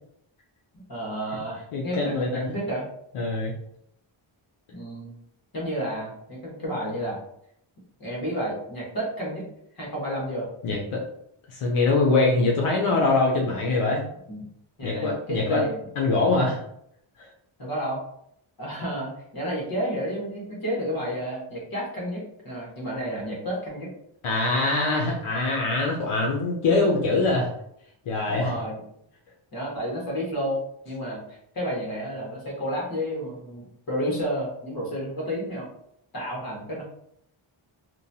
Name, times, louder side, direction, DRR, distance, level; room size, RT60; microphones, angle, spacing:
voice 1, 0.9-2.8 4.7-5.2 5.5-7.2 8.0-9.5 9.8-10.5 14.3-14.5 14.8-15.8 17.6-18.0 18.6-23.9 28.2-28.8 29.5-35.7 36.1-36.8, equal, 45° left, -4 dB, 1.2 m, -31 dB
voice 2, 1.7-2.5 3.1-3.5 10.6-11.0 11.5-14.1 14.8-15.7 16.0-16.6 17.2-17.3 24.2-27.5 28.1-28.5, left 3 dB, 85° left, -2 dB, 0.7 m, -23 dB
2.9 x 2.2 x 2.7 m, 0.72 s
wide cardioid pair, 140°, 49 cm